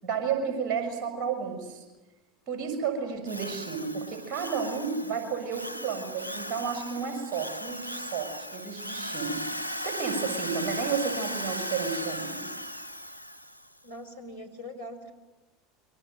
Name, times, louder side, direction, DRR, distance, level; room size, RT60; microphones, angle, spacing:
voice 1, 0.0-1.9 2.5-9.4 9.8-12.5, right 6 dB, 40° right, 5 dB, 6.1 m, -32 dB
Drill, 3.3-13.7, equal, 85° right, 0.9 m, -37 dB
voice 2, 13.8-15.1, left 1 dB, 85° left, 1 dB, 4.7 m, -42 dB
28.5 x 24.0 x 7.8 m, 1.1 s
figure-of-eight pair, 75°, 0 cm